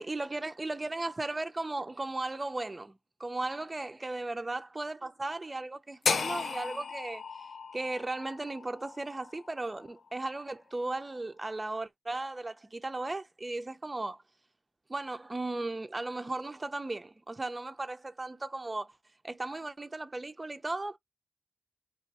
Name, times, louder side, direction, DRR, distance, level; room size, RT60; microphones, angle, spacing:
voice 1, 0.0-7.5 7.7-14.2 14.9-18.9 19.2-21.0, right 2 dB, 25° right, 0.4 m, -36 dB
sound 1, 6.0-10.2, left 5 dB, 65° left, 0.4 m, -35 dB
2.5 x 2.3 x 4.0 m
wide cardioid pair, 95°, 0 cm